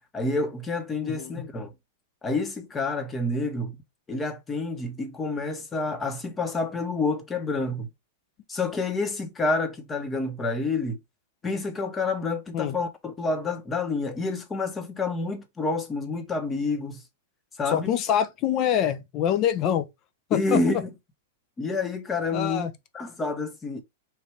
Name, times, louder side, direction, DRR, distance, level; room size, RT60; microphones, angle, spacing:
voice 1, 0.1-1.7 2.2-3.8 4.1-7.9 8.5-11.0 11.4-17.0 17.6-17.9 20.3-20.9 21.6-22.7 22.9-23.8, left 3 dB, 20° left, 0.9 m, -28 dB
voice 2, 1.0-1.5 12.5-12.8 17.7-19.9 20.3-20.8 22.3-22.7, left 9 dB, 40° left, 0.6 m, -25 dB
3.2 x 2.6 x 4.5 m
hypercardioid pair, 110°, 0 cm